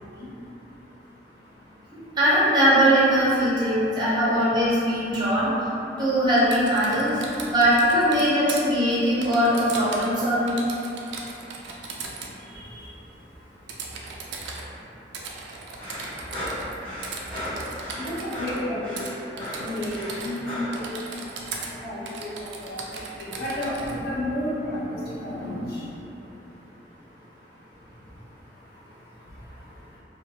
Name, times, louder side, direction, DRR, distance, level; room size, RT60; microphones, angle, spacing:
voice 1, 0.0-2.2 3.4-4.0 4.7-4.8 5.1-5.4 5.8-6.0 7.0-7.5 8.1-8.4 10.8-30.0, left 1 dB, 60° left, -8 dB, 0.7 m, -36 dB
voice 2, 2.2-5.5 6.0-7.2 7.5-10.7 12.4-12.9, equal, 25° right, -9 dB, 0.6 m, -21 dB
Typing, 6.4-8.6 9.2-10.2 10.5-12.3 13.7-14.6 15.1-16.8 17.0-18.6 19.0-19.1 19.4-20.4 20.7-21.7 22.1-23.9, right 4 dB, 75° right, 0.3 m, -38 dB
sound 1, 15.8-20.8, equal, 35° left, 1.2 m, -35 dB
2.4 x 2.3 x 2.7 m, 2.9 s
head